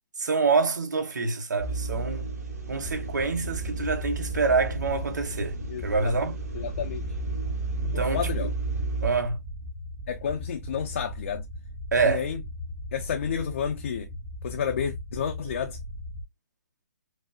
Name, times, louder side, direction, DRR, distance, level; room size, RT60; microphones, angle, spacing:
voice 1, 0.2-2.3 2.7-6.4 7.8-8.5 9.0-9.4 11.9-12.2, right 4 dB, 85° right, 0.8 m, -26 dB
sound 1, 1.6-9.1, right 3 dB, 60° right, 1.8 m, -33 dB
sound 2, 2.8-16.2, left 1 dB, 25° right, 1.1 m, -38 dB
voice 2, 5.7-6.1 6.5-7.0 8.1-8.5 10.1-11.4 12.0-12.4 12.9-14.1 14.4-15.8, left 7 dB, 45° left, 0.5 m, -30 dB
4.9 x 2.1 x 2.2 m
hypercardioid pair, 160°, 10 cm